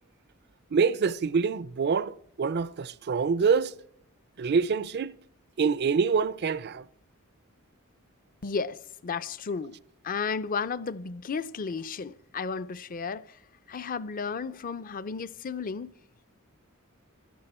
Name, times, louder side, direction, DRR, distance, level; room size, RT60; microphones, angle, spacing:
voice 1, 0.7-3.7 4.4-5.1 5.6-6.8, right 5 dB, 50° right, 0.5 m, -26 dB
voice 2, 8.4-9.8 10.0-13.4 13.7-15.9, left 5 dB, 40° left, 0.5 m, -33 dB
16.5 x 13.5 x 4.3 m
head